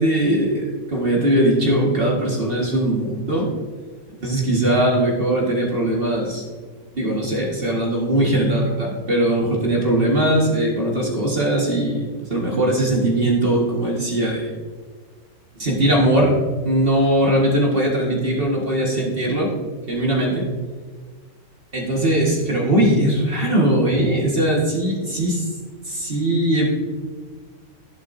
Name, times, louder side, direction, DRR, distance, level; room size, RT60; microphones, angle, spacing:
voice 1, 0.0-3.5 4.2-6.4 7.0-14.5 15.6-16.3 16.6-19.5 19.9-20.5 21.7-25.4 25.8-26.7, right 1 dB, 45° right, -3 dB, 1.9 m, -20 dB
12.5 x 10.5 x 2.7 m, 1.5 s
omnidirectional pair, 1.3 m